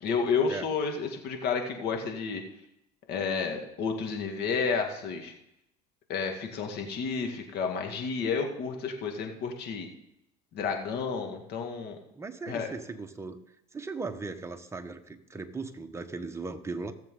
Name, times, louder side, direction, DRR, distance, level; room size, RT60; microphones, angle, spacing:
voice 1, 0.0-2.4 3.1-5.3 6.1-9.9 10.5-12.0 12.5-12.7, left 5 dB, 60° left, 3 dB, 2.2 m, -31 dB
voice 2, 12.1-13.4 13.7-16.9, right 3 dB, 15° right, 6 dB, 1.2 m, -38 dB
17.0 x 7.4 x 3.9 m, 0.83 s
supercardioid pair, 90°, 19 cm